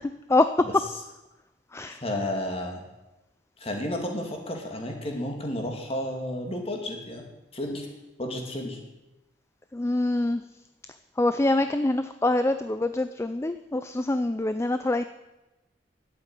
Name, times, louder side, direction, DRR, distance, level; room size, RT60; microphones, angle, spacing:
voice 1, 1.9-2.8 3.6-7.2 7.5-7.9 8.2-8.8, left 1 dB, 35° left, 2 dB, 2.6 m, -32 dB
voice 2, 9.7-10.4 11.2-15.0, left 2 dB, 15° left, 10 dB, 0.4 m, -25 dB
12.0 x 8.4 x 9.1 m, 1.0 s
head